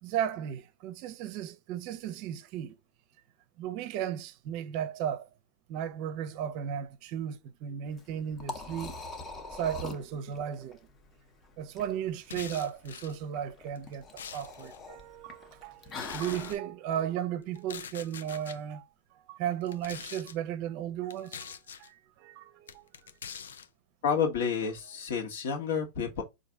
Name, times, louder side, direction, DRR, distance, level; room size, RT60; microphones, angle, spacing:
voice 1, 0.0-2.8 3.6-5.3 5.7-8.9 9.5-10.9 11.6-22.9, right 9 dB, 50° right, 0.5 m, -35 dB
Liquid, 7.9-16.6, left 3 dB, 25° left, 0.7 m, -44 dB
sound 1, 12.2-13.2 13.8-14.8 15.9-16.6 17.5-18.6 19.6-20.4 21.1-21.9 22.7-23.7, left 7 dB, 85° left, 0.4 m, -44 dB
voice 2, 24.0-26.2, left 6 dB, 70° left, 1.2 m, -30 dB
4.1 x 2.5 x 3.4 m
hypercardioid pair, 120°, 0 cm